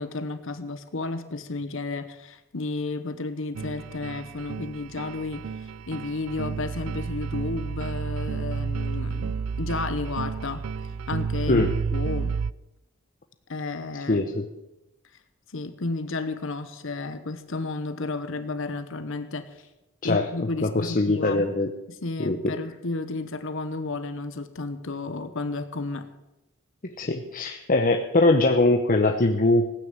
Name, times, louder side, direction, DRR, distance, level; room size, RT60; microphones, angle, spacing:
voice 1, 0.0-10.6 11.1-11.6 11.9-12.4 13.5-14.2 15.5-19.6 20.0-21.5 21.9-26.1, left 3 dB, 65° left, 10 dB, 1.0 m, -32 dB
sound 1, 3.5-12.5, right 5 dB, 90° right, 0.4 m, -31 dB
voice 2, 14.1-14.5 20.0-20.3 20.6-21.7 22.2-22.6 26.8-29.7, left 2 dB, 40° left, 4 dB, 0.9 m, -22 dB
16.5 x 9.5 x 7.4 m, 0.96 s
head